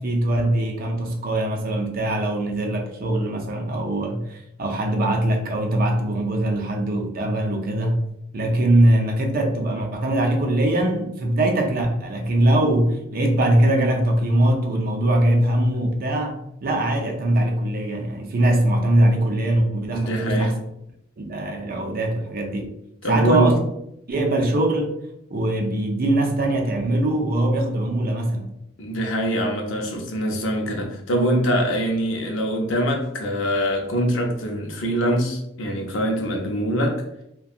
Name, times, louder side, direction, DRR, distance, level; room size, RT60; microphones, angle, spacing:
voice 1, 0.0-8.0 8.3-20.5 21.2-22.7 23.1-23.6 24.1-24.9 25.3-28.5, right 1 dB, 50° right, 0.5 m, -22 dB
voice 2, 19.9-20.5 23.0-23.6 28.8-37.0, equal, 75° left, 0.6 m, -23 dB
2.7 x 2.2 x 2.4 m
head